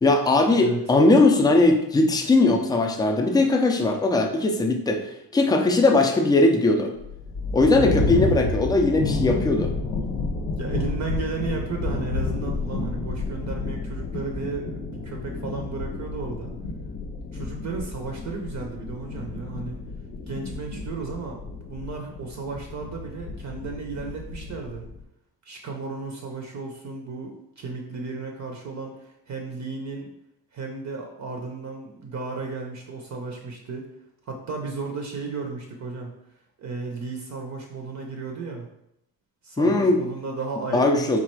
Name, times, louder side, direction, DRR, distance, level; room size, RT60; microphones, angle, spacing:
voice 1, 0.0-5.0 5.3-6.9 7.5-9.7 39.6-40.0 40.7-41.2, left 2 dB, 10° left, 3 dB, 0.3 m, -19 dB
sound 1, 7.0-25.0, left 3 dB, 90° left, 0.8 m, -30 dB
voice 2, 10.5-16.5 17.3-19.8 20.3-24.8 25.4-30.1 30.5-33.9 34.3-36.1 36.6-38.7 39.4-41.2, right 4 dB, 45° right, 2 dB, 0.6 m, -34 dB
4.2 x 2.4 x 4.4 m, 0.79 s
cardioid pair, 150°, 39 cm